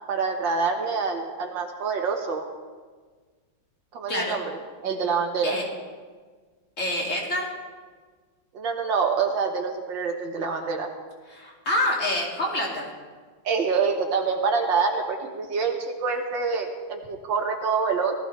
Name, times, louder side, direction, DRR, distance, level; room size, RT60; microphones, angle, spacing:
voice 1, 0.1-2.4 3.9-5.6 8.5-10.9 13.4-18.1, right 5 dB, 85° right, 2 dB, 2.1 m, -26 dB
voice 2, 6.8-7.5 11.3-12.9, left 1 dB, 40° left, -2 dB, 3.0 m, -27 dB
19.0 x 14.5 x 3.3 m, 1.5 s
omnidirectional pair, 2.0 m